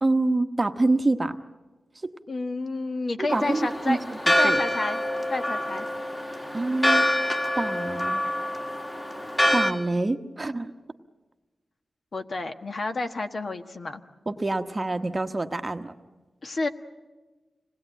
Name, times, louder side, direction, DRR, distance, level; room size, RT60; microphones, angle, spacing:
voice 1, 0.0-1.4 2.0-2.1 3.2-4.0 4.4-4.6 6.5-7.1 7.6-8.2 9.5-10.7 14.3-15.9, right 2 dB, 25° right, 7 dB, 1.0 m, -26 dB
voice 2, 2.3-4.0 4.4-5.0 5.3-5.9 12.1-14.0 16.4-16.7, left 3 dB, 50° left, 7 dB, 1.3 m, -30 dB
Church bell, 3.3-9.7, left 1 dB, 20° left, 1.9 m, -26 dB
26.5 x 19.5 x 9.1 m, 1.3 s
wide cardioid pair, 130°, 0 cm